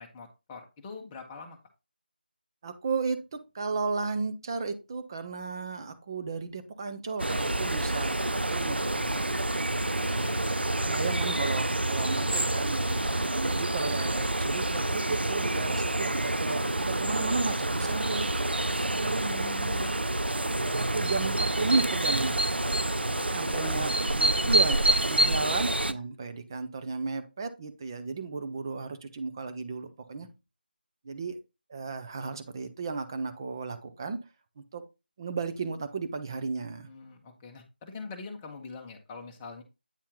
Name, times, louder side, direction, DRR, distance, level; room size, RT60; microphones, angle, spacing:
voice 1, 0.0-1.6 9.4-11.4 12.9-13.1 23.2-24.8 25.2-25.7 30.2-30.3 36.9-39.6, left 4 dB, 10° left, 2 dB, 1.0 m, -45 dB
voice 2, 2.6-9.4 10.9-12.8 13.2-20.0 20.7-22.4 23.3-23.9 24.1-30.3 31.0-31.4 31.7-34.2 34.6-34.8 35.2-36.9, right 4 dB, 25° right, 8 dB, 0.8 m, -34 dB
sound 1, 7.2-25.9, right 1 dB, 80° right, 0.7 m, -28 dB
9.0 x 4.3 x 3.7 m, 0.26 s
figure-of-eight pair, 165°, 6 cm